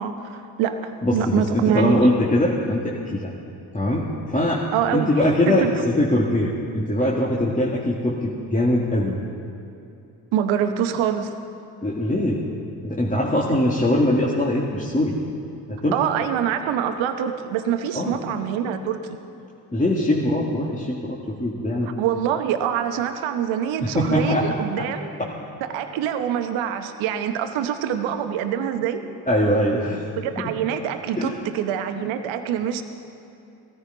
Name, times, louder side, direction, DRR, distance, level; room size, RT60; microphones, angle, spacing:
voice 1, 0.0-2.0 4.7-5.1 5.5-5.7 10.3-11.3 15.9-19.2 22.0-25.1 25.6-29.0 30.2-32.8, right 9 dB, 70° right, 8 dB, 1.1 m, -25 dB
voice 2, 1.0-3.3 3.7-4.1 4.3-4.6 4.9-9.2 11.8-12.4 12.8-15.2 15.7-16.0 17.9-18.2 19.7-21.9 23.8-24.9 25.2-25.3 29.3-30.1 30.4-30.5 31.2-31.3, left 1 dB, 15° left, -4 dB, 1.9 m, -22 dB
16.5 x 14.5 x 3.9 m, 2.7 s
hypercardioid pair, 45°, 48 cm